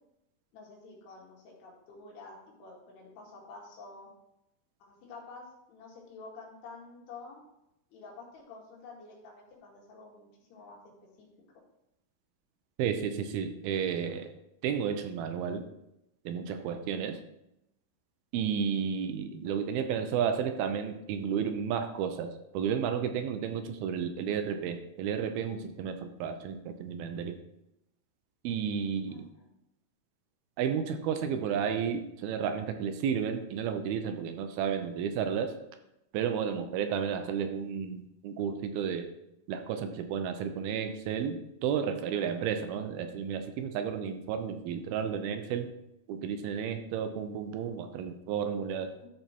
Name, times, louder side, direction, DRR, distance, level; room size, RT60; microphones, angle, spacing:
voice 1, 0.5-4.1 4.8-7.4 7.9-10.8 11.2-11.3 29.1-29.5 48.9-49.1, left 3 dB, 90° left, -3 dB, 4.2 m, -49 dB
voice 2, 12.8-14.3 14.6-15.6 16.3-17.2 18.3-27.4 28.4-29.3 30.6-35.5 36.1-39.1 39.5-45.7 46.1-48.9, right 7 dB, 80° right, 7 dB, 2.5 m, -32 dB
13.0 x 4.6 x 4.4 m, 0.84 s
omnidirectional pair, 4.5 m